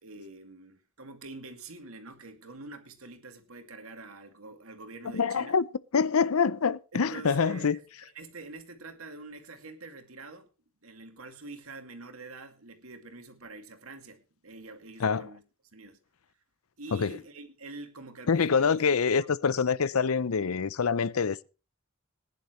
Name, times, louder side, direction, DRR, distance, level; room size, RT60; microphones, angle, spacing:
voice 1, 0.0-5.5 6.9-10.5 10.8-15.4 15.7-16.0 16.8-19.3, right 3 dB, 80° right, 2.3 m, -46 dB
voice 2, 5.1-5.7 5.9-7.8 15.0-15.3 16.9-17.2 18.3-21.4, left 5 dB, 80° left, 0.6 m, -25 dB
20.0 x 10.5 x 3.2 m
head